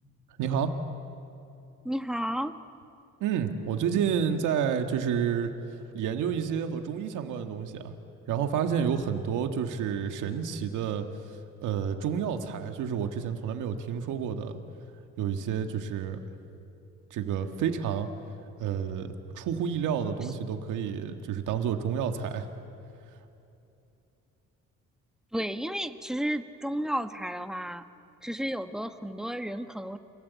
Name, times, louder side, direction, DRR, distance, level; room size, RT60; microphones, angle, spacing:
voice 1, 0.4-0.7 3.2-5.5 5.9-7.9 8.3-11.1 11.6-14.6 15.2-16.2 17.1-18.1 18.6-19.1 19.3-22.5, right 7 dB, 90° right, 6 dB, 1.8 m, -29 dB
voice 2, 1.8-2.5 25.3-27.8 28.2-30.0, equal, ahead, 8 dB, 1.4 m, -32 dB
29.5 x 23.0 x 8.3 m, 2.8 s
cardioid pair, 90°, 30 cm